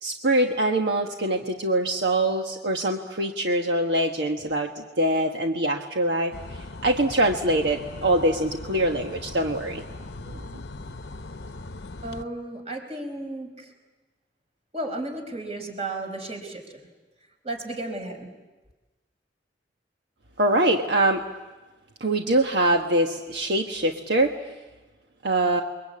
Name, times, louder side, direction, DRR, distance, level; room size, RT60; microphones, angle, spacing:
voice 1, 0.0-9.8 10.3-10.4 20.4-21.2 22.0-24.3 25.2-25.6, right 1 dB, 70° right, 3 dB, 1.4 m, -24 dB
sound 1, 6.3-12.2, left 2 dB, 65° left, 0.9 m, -39 dB
voice 2, 12.0-13.7 14.7-16.8 17.4-18.3, right 2 dB, 35° right, 3 dB, 4.6 m, -34 dB
29.0 x 22.5 x 8.5 m, 1.2 s
head